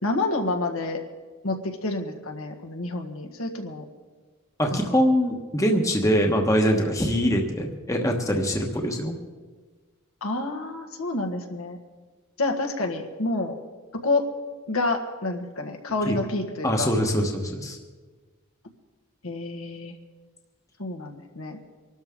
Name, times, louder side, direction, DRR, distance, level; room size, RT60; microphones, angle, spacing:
voice 1, 0.0-1.0 1.4-3.8 4.7-5.1 10.2-11.8 12.4-13.5 13.9-14.3 14.7-16.9 19.2-19.9 20.8-21.6, left 2 dB, 80° left, 3 dB, 1.6 m, -28 dB
voice 2, 4.6-9.2 16.1-16.2 16.6-17.8, equal, 15° left, 2 dB, 1.2 m, -23 dB
25.0 x 12.5 x 3.7 m, 1.4 s
head